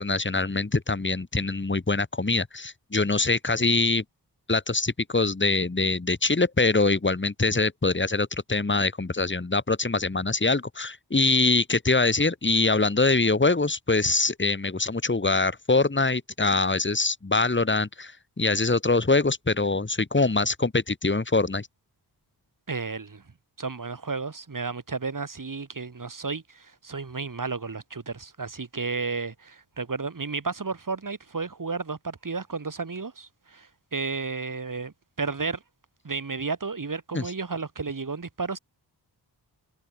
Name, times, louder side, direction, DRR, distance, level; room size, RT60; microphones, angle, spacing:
voice 1, 0.0-4.0 4.5-18.1 18.4-21.7 37.1-37.2, left 3 dB, 25° left, 3.3 m, -24 dB
voice 2, 22.7-23.2 23.6-35.6 36.0-38.6, right 4 dB, 50° right, 7.7 m, -32 dB
cardioid pair, 65°, 41 cm